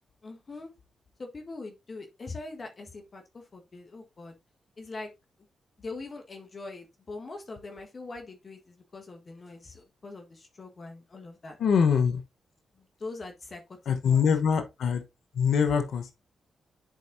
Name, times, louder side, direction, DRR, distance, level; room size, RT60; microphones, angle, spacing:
voice 1, 0.2-0.7 1.2-4.3 4.8-5.1 5.8-11.6 12.7-13.6 14.0-14.2, left 3 dB, 45° left, 1.4 m, -42 dB
voice 2, 11.6-12.2 13.9-15.0 15.3-16.1, left 6 dB, 75° left, 1.0 m, -24 dB
10.5 x 4.2 x 2.6 m
supercardioid pair, 50°, 0 cm